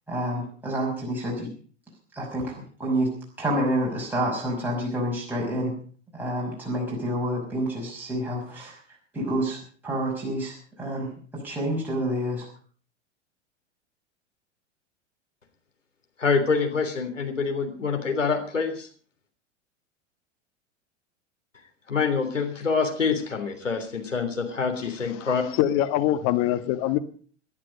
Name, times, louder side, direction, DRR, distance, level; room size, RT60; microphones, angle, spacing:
voice 1, 0.1-1.5 2.1-5.8 6.1-8.8 9.1-12.5, right 1 dB, 5° right, -4 dB, 5.8 m, -28 dB
voice 2, 16.2-18.9 21.9-25.4, left 5 dB, 80° left, 4 dB, 3.5 m, -26 dB
voice 3, 25.2-27.0, left 13 dB, 40° left, 10 dB, 1.5 m, -24 dB
19.0 x 11.0 x 5.3 m, 0.43 s
figure-of-eight pair, 90°, 37 cm